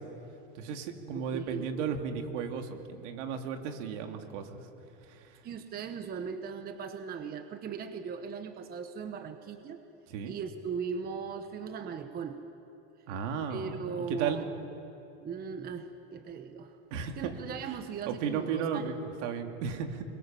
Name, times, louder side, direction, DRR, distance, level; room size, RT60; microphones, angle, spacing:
voice 1, 0.5-4.7 5.1-5.4 10.1-10.3 13.1-14.4 16.9-17.3 18.1-20.0, right 6 dB, 70° right, 4 dB, 2.7 m, -35 dB
voice 2, 1.1-1.7 5.4-9.8 10.2-12.4 13.5-14.5 15.2-16.8 17.2-18.9, right 6 dB, 25° right, 8 dB, 1.1 m, -38 dB
26.0 x 22.0 x 7.5 m, 2.8 s
supercardioid pair, 145°, 38 cm